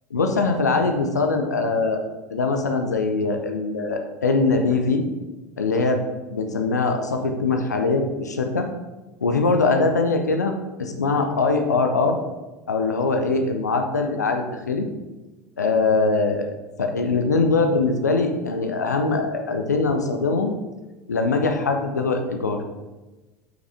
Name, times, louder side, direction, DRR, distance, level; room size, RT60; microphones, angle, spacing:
voice 1, 0.1-5.0 5.6-6.0 6.3-8.7 9.2-10.5 10.8-12.2 12.7-14.9 15.6-16.5 16.8-20.5 21.1-22.6, left 3 dB, 80° left, 5 dB, 0.7 m, -22 dB
7.4 x 6.1 x 3.4 m, 1.1 s
figure-of-eight pair, 75°, 9 cm